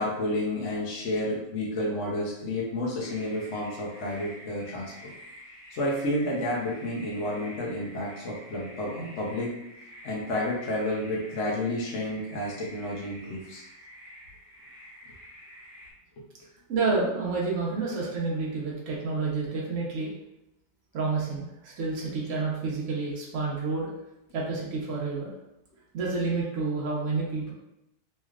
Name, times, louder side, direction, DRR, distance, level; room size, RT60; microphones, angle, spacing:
voice 1, 0.0-4.9 5.8-9.5 10.0-13.6, left 1 dB, 65° left, -4 dB, 1.0 m, -30 dB
sound 1, 3.0-15.9, equal, 5° right, 1.0 m, -48 dB
voice 2, 16.7-20.1 20.9-23.9 24.3-25.3 25.9-27.5, right 4 dB, 70° right, -4 dB, 1.1 m, -29 dB
3.2 x 3.2 x 2.3 m, 0.87 s
omnidirectional pair, 1.4 m